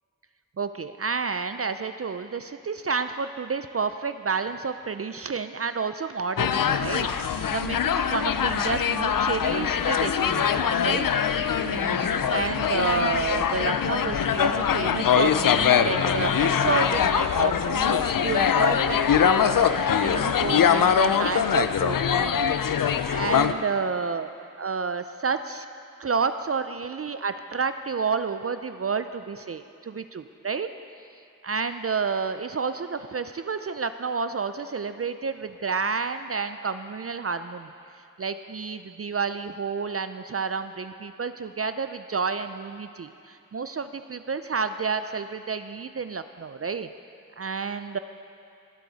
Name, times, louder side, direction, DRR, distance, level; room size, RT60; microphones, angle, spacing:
voice 1, 0.6-24.3 24.6-25.7 26.0-30.7 31.4-37.7 38.2-46.9 47.4-48.0, right 5 dB, 45° right, 10 dB, 0.4 m, -30 dB
sound 1, 6.4-23.5, left 8 dB, 80° left, 0.5 m, -23 dB
19.0 x 8.2 x 4.0 m, 2.6 s
wide cardioid pair, 45°, 33 cm